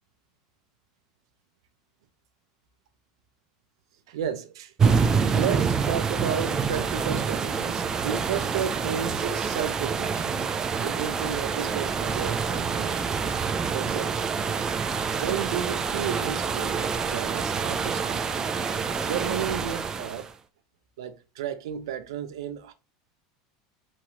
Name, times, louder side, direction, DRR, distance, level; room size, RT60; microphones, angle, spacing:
voice 1, 4.1-10.4 10.8-13.3 13.7-14.3 15.2-18.2 18.8-20.3 21.0-22.7, right 8 dB, 85° right, 0.5 m, -33 dB
sound 1, 4.8-20.3, right 5 dB, 25° right, 0.3 m, -27 dB
3.0 x 2.8 x 2.5 m
supercardioid pair, 130°, 3 cm